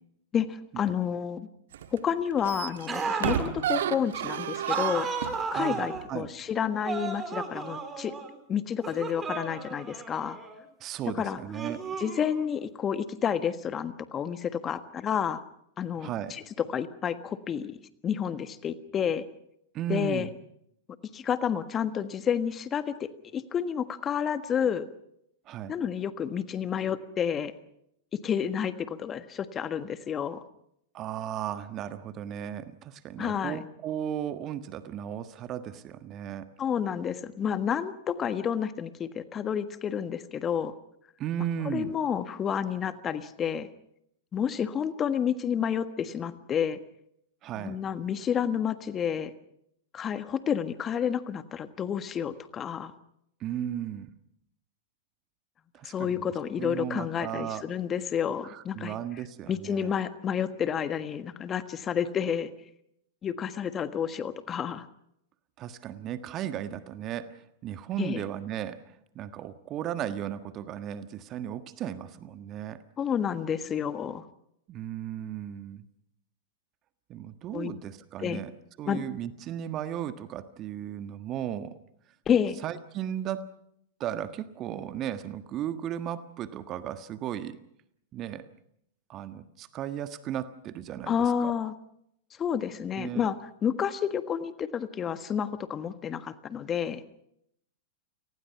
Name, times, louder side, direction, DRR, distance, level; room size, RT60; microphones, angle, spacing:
voice 1, 0.3-1.5 1.9-5.1 5.5-8.1 8.5-10.4 11.1-11.4 12.0-15.4 15.8-17.8 18.0-19.2 19.9-20.3 21.1-24.9 25.7-27.5 28.1-30.4 33.2-33.6 36.6-40.7 41.6-43.7 44.3-46.8 47.5-49.3 49.9-52.9 55.8-58.9 59.5-62.5 63.2-64.9 68.0-68.2 73.0-74.2 77.5-77.7 78.2-78.4 78.9-79.0 82.3-82.6 91.1-91.7 92.4-97.0, left 8 dB, 25° left, 11 dB, 1.5 m, -30 dB
sound 1, 1.7-2.0 2.3-5.5 5.9-6.0, right 10 dB, 65° right, 1.6 m, -31 dB
sound 2, 2.9-3.5 4.7-6.1 6.9-8.4 8.8-10.6 11.5-12.6, right 4 dB, 20° right, 4.3 m, -34 dB
voice 2, 5.5-6.3 10.8-11.9 16.0-16.3 19.7-20.3 25.5-25.7 30.9-36.5 41.2-41.9 47.4-47.8 53.4-54.1 55.7-56.3 56.6-57.6 58.4-59.9 65.6-72.8 74.7-75.8 77.1-78.5 78.8-81.8 82.6-83.5 84.0-87.6 88.1-88.5 89.1-91.5 93.0-93.3, right 10 dB, 35° right, 10 dB, 1.5 m, -35 dB
29.0 x 19.5 x 5.8 m, 0.76 s
hypercardioid pair, 100°, 0 cm